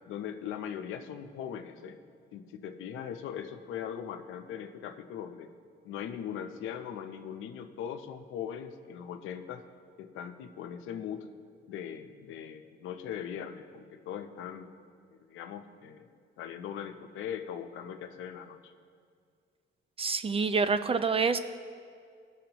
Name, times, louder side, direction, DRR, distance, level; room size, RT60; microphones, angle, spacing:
voice 1, 0.1-2.0 2.3-5.5 5.8-9.6 10.0-11.3 11.7-14.7 15.1-16.1 16.4-18.7, left 8 dB, 90° left, 7 dB, 0.7 m, -40 dB
voice 2, 20.0-21.4, right 5 dB, 30° right, 11 dB, 0.5 m, -27 dB
18.5 x 6.4 x 2.9 m, 2.2 s
cardioid pair, 90°, 20 cm